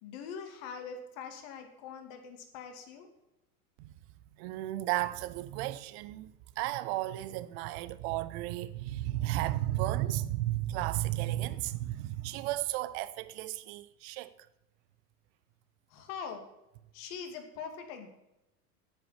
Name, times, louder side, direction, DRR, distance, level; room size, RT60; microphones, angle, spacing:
voice 1, 0.0-3.1 15.9-16.5 16.9-18.1, left 6 dB, 50° left, 2.3 m, -43 dB
voice 2, 4.4-14.3, right 15 dB, 45° right, 0.7 m, -34 dB
9.0 x 8.8 x 5.7 m
figure-of-eight pair, 85°, 46 cm